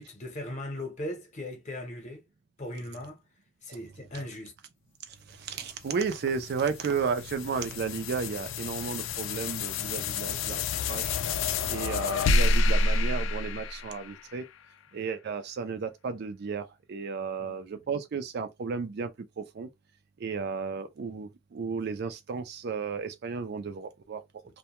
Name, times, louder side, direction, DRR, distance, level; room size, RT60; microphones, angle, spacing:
voice 1, 0.0-2.2 2.6-3.2 3.6-4.5 17.4-17.8, left 1 dB, 35° left, 0.8 m, -38 dB
voice 2, 5.3-10.6 10.9-11.1 11.7-14.4 14.9-19.1 19.4-19.7 20.2-24.2, right 5 dB, 55° right, 0.4 m, -33 dB
sound 1, 5.8-14.4, left 3 dB, 65° left, 0.3 m, -29 dB
2.2 x 2.2 x 2.8 m
head